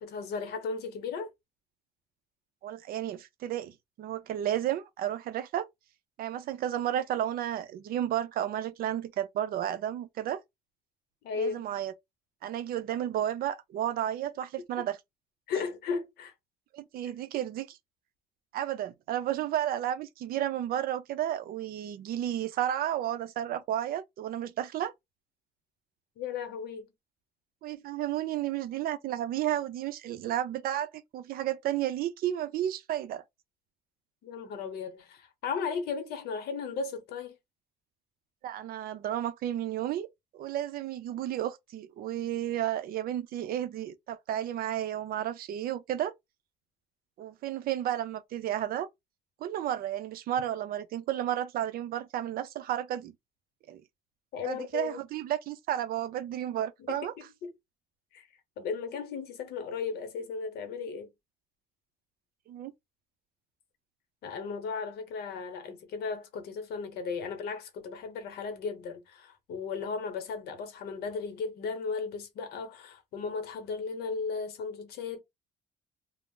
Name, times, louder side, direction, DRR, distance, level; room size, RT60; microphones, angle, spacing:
voice 1, 0.0-1.3 11.2-11.7 15.5-16.3 26.2-26.9 34.2-37.4 54.3-55.0 56.8-57.0 57.4-57.5 58.1-58.3 58.6-61.1 64.2-75.2, left 5 dB, 70° left, 0.9 m, -35 dB
voice 2, 2.6-5.7 6.2-10.4 11.4-11.9 12.4-15.0 16.7-17.8 18.5-24.9 27.6-33.2 38.4-40.1 40.3-46.1 47.2-48.9 49.4-53.1 53.7-53.8 54.4-57.1 62.5-62.7, right 11 dB, 60° right, 0.5 m, -32 dB
2.4 x 2.0 x 3.6 m
cardioid pair, 110°, 17 cm